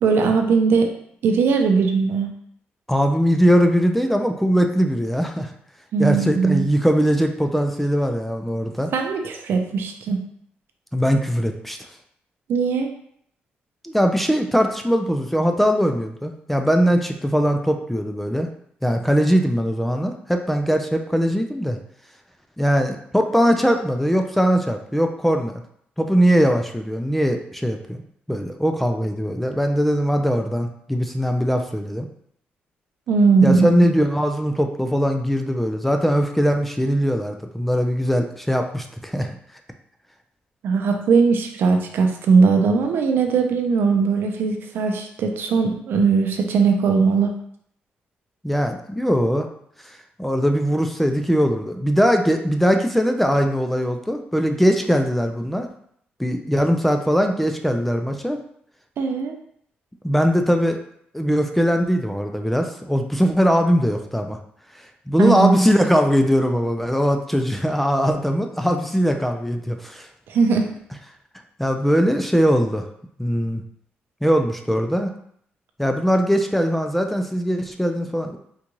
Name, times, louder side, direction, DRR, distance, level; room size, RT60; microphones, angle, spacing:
voice 1, 0.0-0.9 1.2-2.3 5.9-6.7 8.9-10.2 12.5-12.9 33.1-33.9 40.6-47.3 59.0-59.4 65.2-65.7 70.3-70.6, right 5 dB, 70° right, 4 dB, 0.5 m, -19 dB
voice 2, 2.9-5.5 6.0-8.9 10.9-11.8 13.8-18.5 18.8-21.8 22.6-25.6 26.0-28.0 28.3-32.1 33.4-39.3 48.4-49.5 49.8-55.7 56.2-58.4 60.0-60.8 61.1-64.4 64.7-70.1 71.6-72.9 73.2-73.6 74.2-75.1 75.8-78.4, equal, 5° left, 5 dB, 0.3 m, -20 dB
3.8 x 2.3 x 3.0 m, 0.67 s
cardioid pair, 95°, 4 cm